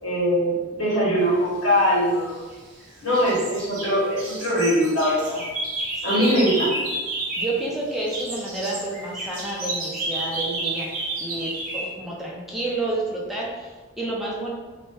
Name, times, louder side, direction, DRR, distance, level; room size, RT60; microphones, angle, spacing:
voice 1, 0.0-2.4 3.0-5.4 6.0-6.7, equal, 75° left, -7 dB, 1.4 m, -22 dB
sound 1, 2.0-2.8 3.1-7.6 7.9-11.9, right 2 dB, 40° right, 0.8 m, -31 dB
voice 2, 6.1-6.4 7.4-10.9 11.2-14.5, right 2 dB, ahead, -5 dB, 0.5 m, -30 dB
2.7 x 2.1 x 3.2 m, 1.3 s
head